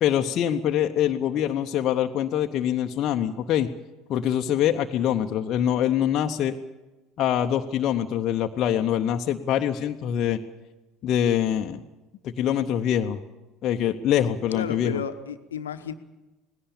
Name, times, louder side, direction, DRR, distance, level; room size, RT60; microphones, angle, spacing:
voice 1, 0.0-3.7 4.1-6.5 7.2-10.4 11.0-11.8 12.2-13.2 13.6-15.0, left 10 dB, 45° left, 5 dB, 0.9 m, -24 dB
voice 2, 14.5-15.9, left 7 dB, 75° left, 10 dB, 1.0 m, -32 dB
19.0 x 17.0 x 8.7 m, 1.1 s
figure-of-eight pair, 65°, 0 cm